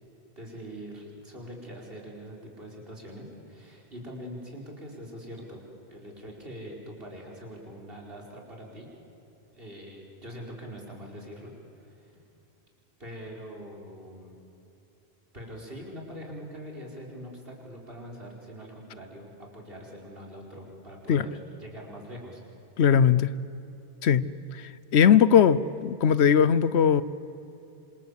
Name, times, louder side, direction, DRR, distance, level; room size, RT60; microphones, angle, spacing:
voice 1, 0.4-5.6 5.9-8.9 9.5-11.5 11.8-12.2 13.0-14.4 15.3-22.4, equal, 60° right, -1 dB, 5.2 m, -43 dB
voice 2, 22.8-23.3 24.0-24.3 24.5-27.0, left 8 dB, 85° left, 17 dB, 1.1 m, -20 dB
27.0 x 26.5 x 8.4 m, 2.9 s
omnidirectional pair, 1.1 m